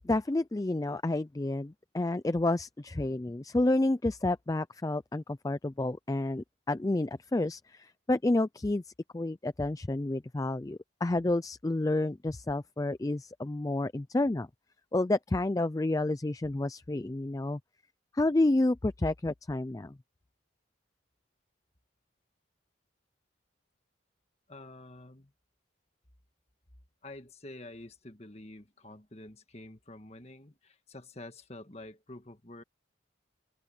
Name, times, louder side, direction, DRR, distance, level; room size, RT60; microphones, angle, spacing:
voice 1, 0.0-14.5 14.9-17.6 18.1-19.9, left 2 dB, 15° left, 0.3 m, -30 dB
voice 2, 24.5-25.3 27.0-32.6, left 2 dB, 35° left, 1.6 m, -48 dB
open air
head